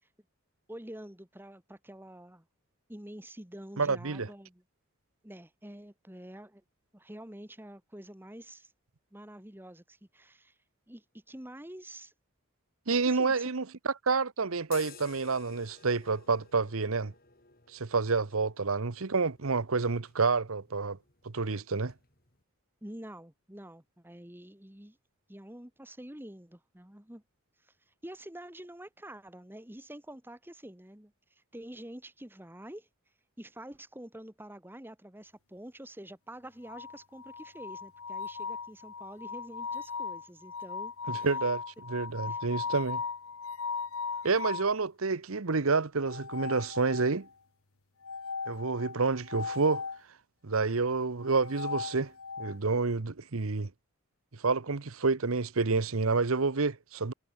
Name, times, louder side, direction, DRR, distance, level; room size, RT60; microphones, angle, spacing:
voice 1, 0.7-2.4 2.9-4.6 5.2-6.6 6.9-8.7 9.1-10.6 10.9-12.1 13.1-13.5 22.8-25.0 25.3-27.2 27.6-32.9 33.4-41.3 42.3-42.4, right 1 dB, 10° right, 1.5 m, -47 dB
voice 2, 3.8-4.3 12.9-17.1 17.7-21.0 21.2-21.9 41.1-43.0 44.2-47.3 48.5-49.8 50.4-52.1 52.4-53.7 54.4-57.1, right 4 dB, 70° right, 1.0 m, -29 dB
sound 1, 14.6-22.4, left 7 dB, 45° left, 4.2 m, -55 dB
sound 2, 36.6-44.8 46.0-47.3 48.0-50.0 51.2-52.6, left 5 dB, 75° left, 1.4 m, -38 dB
head